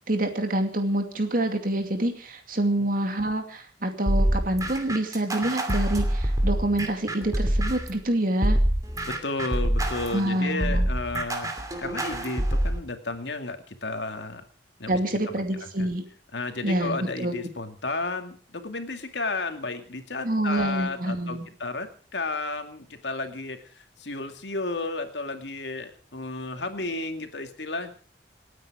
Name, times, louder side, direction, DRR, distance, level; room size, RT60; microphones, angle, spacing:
voice 1, 0.1-8.6 10.1-10.9 14.9-16.0 16.6-17.4 20.2-21.5, right 1 dB, 50° right, 6 dB, 2.5 m, -27 dB
sound 1, 4.1-8.0 8.4-12.8, right 1 dB, 20° right, 2.6 m, -26 dB
voice 2, 9.1-11.5 11.8-14.4 14.8-15.0 15.3-15.4 15.8-15.9 16.3-27.9, left 3 dB, 85° left, 6 dB, 2.4 m, -33 dB
28.0 x 9.4 x 4.9 m, 0.40 s
head